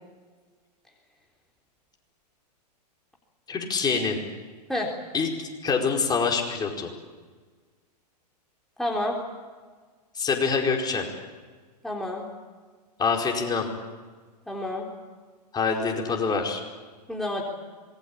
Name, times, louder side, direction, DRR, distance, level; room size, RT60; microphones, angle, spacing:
voice 1, 3.5-4.2 5.1-6.9 10.1-11.1 13.0-13.7 15.5-16.6, left 5 dB, 20° left, 1 dB, 4.7 m, -25 dB
voice 2, 8.8-9.2 11.8-12.3 14.5-14.9 17.1-17.4, left 1 dB, ahead, -2 dB, 3.8 m, -29 dB
26.5 x 21.0 x 8.7 m, 1.5 s
hypercardioid pair, 115°, 21 cm